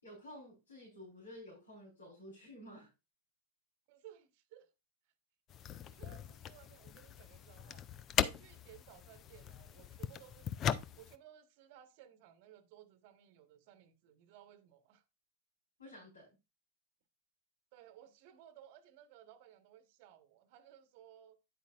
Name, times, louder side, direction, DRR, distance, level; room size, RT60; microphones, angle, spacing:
voice 1, 0.0-2.9 15.8-16.4, left 1 dB, 75° left, 4.2 m, -52 dB
voice 2, 3.9-4.7 5.5-7.9 8.2-10.5 11.0-15.0 17.7-21.4, right 11 dB, 45° right, 1.2 m, -59 dB
sound 1, 5.5-11.2, left 9 dB, 30° left, 0.6 m, -39 dB
9.9 x 8.3 x 2.5 m
figure-of-eight pair, 90°, 0 cm